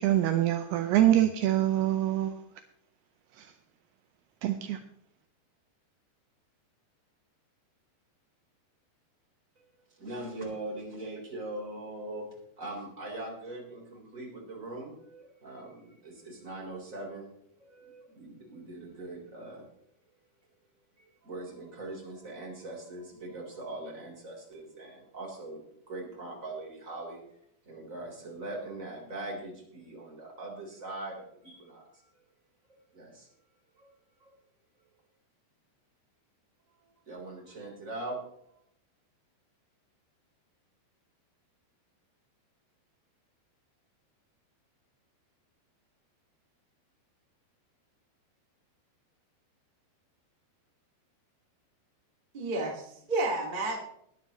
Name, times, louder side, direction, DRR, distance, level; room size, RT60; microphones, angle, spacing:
voice 1, 0.0-2.4 3.4-3.5 4.4-4.8, right 13 dB, 80° right, 2.5 m, -25 dB
voice 2, 10.0-12.3 12.6-17.3 17.6-19.7 21.0-25.6 25.9-27.2 27.7-32.2 32.9-33.3 33.8-33.9 34.2-34.3 36.7-38.2, right 2 dB, 20° right, 3.8 m, -41 dB
voice 3, 52.3-53.8, right 2 dB, 35° right, 0.8 m, -31 dB
20.0 x 11.0 x 3.1 m
omnidirectional pair, 5.0 m